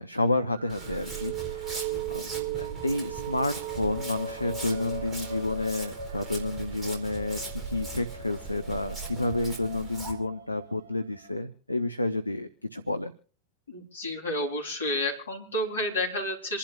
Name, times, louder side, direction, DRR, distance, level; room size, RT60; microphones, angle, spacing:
voice 1, 0.0-1.8 2.1-13.1, left 2 dB, 85° left, 9 dB, 0.8 m, -30 dB
sound 1, 0.5-11.3, right 6 dB, 60° right, 1.7 m, -38 dB
Walk footsteps, 0.7-10.1, right 4 dB, 20° right, 4.2 m, -39 dB
voice 2, 13.7-16.6, left 1 dB, 70° left, 0 dB, 4.2 m, -30 dB
28.0 x 11.5 x 2.5 m, 0.40 s
figure-of-eight pair, 90°, 0 cm